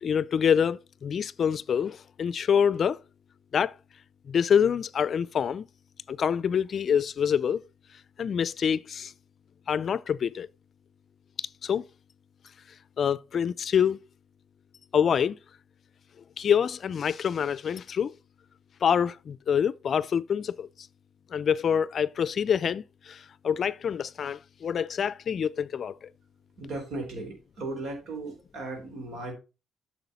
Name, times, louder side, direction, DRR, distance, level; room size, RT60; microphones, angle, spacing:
voice 1, 0.0-3.0 3.5-3.7 4.3-5.7 6.1-7.6 8.2-9.1 9.7-10.5 11.6-11.9 13.0-14.0 14.9-15.4 16.4-18.1 18.8-20.7 21.3-26.1, left 7 dB, 55° left, 0.4 m, -26 dB
voice 2, 26.6-29.3, right 2 dB, 75° right, 3.9 m, -36 dB
9.1 x 6.2 x 4.0 m
cardioid pair, 90°, 0 cm